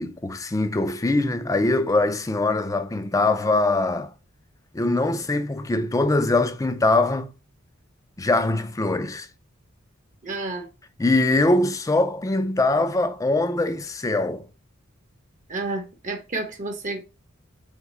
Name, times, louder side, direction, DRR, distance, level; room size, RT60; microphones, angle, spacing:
voice 1, 0.0-4.1 4.7-7.3 8.2-9.3 11.0-14.5, left 2 dB, 15° left, 0.4 m, -22 dB
voice 2, 10.2-10.7 15.5-17.0, right 2 dB, 40° right, 0.7 m, -30 dB
3.6 x 3.6 x 3.0 m
head